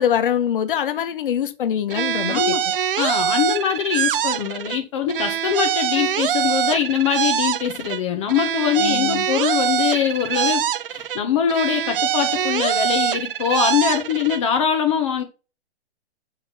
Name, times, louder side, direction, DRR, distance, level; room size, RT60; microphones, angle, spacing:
voice 1, 0.0-2.4 8.8-9.3, left 9 dB, 50° left, 1.7 m, -23 dB
sound 1, 1.9-4.8 5.1-8.0 8.3-11.2 11.5-14.4, right 9 dB, 55° right, 0.7 m, -23 dB
voice 2, 2.3-2.6 3.0-10.6 10.9-15.2, left 8 dB, 30° left, 1.2 m, -22 dB
6.5 x 6.4 x 5.8 m
hypercardioid pair, 170°, 34 cm